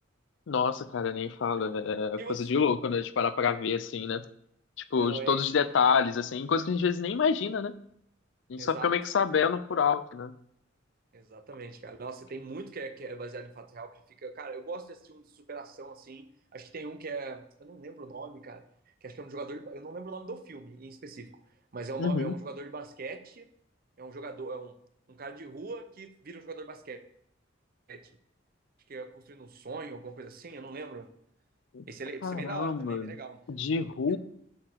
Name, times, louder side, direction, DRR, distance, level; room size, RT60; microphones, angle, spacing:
voice 1, 0.5-4.2 4.9-7.7 8.5-10.3 22.0-22.3 31.7-31.8 32.2-33.1 33.5-34.2, left 6 dB, 65° left, 15 dB, 0.4 m, -28 dB
voice 2, 2.2-2.5 5.0-5.4 8.6-8.9 11.1-18.6 19.0-21.3 21.7-23.5 24.0-24.7 25.1-27.0 27.9-28.0 28.9-31.1 31.9-33.4 34.1-34.2, right 3 dB, 50° right, 9 dB, 0.6 m, -41 dB
7.3 x 4.9 x 4.5 m, 0.71 s
head